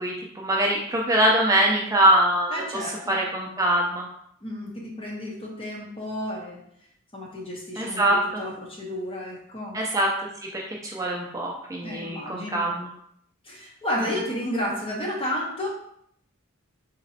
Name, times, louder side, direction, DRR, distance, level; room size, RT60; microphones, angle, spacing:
voice 1, 0.0-4.0 7.8-8.4 9.7-10.1 10.5-12.9 14.0-14.3, right 1 dB, 15° right, -2 dB, 0.4 m, -23 dB
voice 2, 2.5-3.1 4.4-6.6 7.1-9.8 11.8-12.7 13.4-15.7, left 1 dB, 25° left, -2 dB, 0.9 m, -32 dB
4.0 x 2.9 x 2.7 m, 0.70 s
head